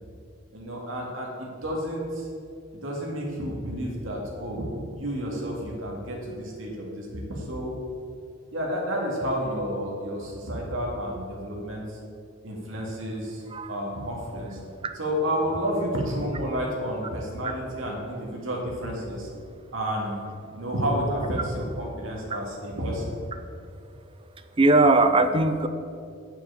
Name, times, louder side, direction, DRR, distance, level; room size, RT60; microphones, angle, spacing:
voice 1, 0.5-2.3 2.7-4.7 4.9-7.7 8.5-12.0 12.4-13.4 13.7-14.6 14.9-19.3 19.7-20.2 20.5-23.2, equal, 65° right, -2 dB, 2.1 m, -30 dB
voice 2, 24.6-25.7, right 2 dB, 25° right, 9 dB, 0.5 m, -19 dB
7.4 x 6.0 x 6.7 m, 2.4 s
head